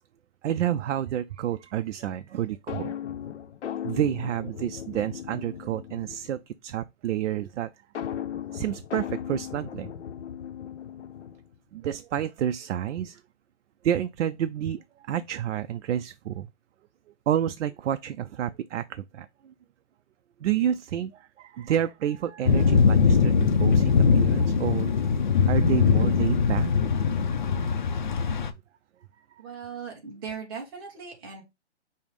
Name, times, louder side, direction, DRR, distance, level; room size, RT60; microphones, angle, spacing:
voice 1, 0.4-2.9 3.8-7.7 8.5-9.9 11.7-13.2 13.8-14.8 15.1-16.5 17.3-19.5 20.4-24.9 25.5-26.7, right 10 dB, 85° right, 0.5 m, -29 dB
sound 1, 2.7-6.4 8.0-11.6, left 9 dB, 85° left, 0.7 m, -37 dB
sound 2, 22.5-28.5, left 5 dB, 45° left, 0.4 m, -21 dB
voice 2, 29.4-31.4, right 6 dB, 20° right, 1.0 m, -38 dB
5.4 x 2.1 x 4.7 m
hypercardioid pair, 175°, 35 cm